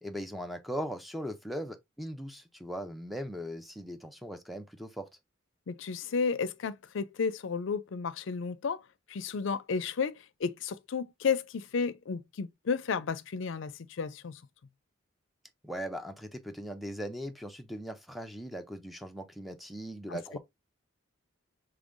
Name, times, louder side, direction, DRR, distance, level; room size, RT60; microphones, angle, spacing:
voice 1, 0.0-5.1 15.6-20.4, equal, ahead, 0.4 m, -39 dB
voice 2, 5.7-8.8 9.1-14.3 20.1-20.2, left 5 dB, 65° left, 0.4 m, -32 dB
5.4 x 3.3 x 2.5 m
head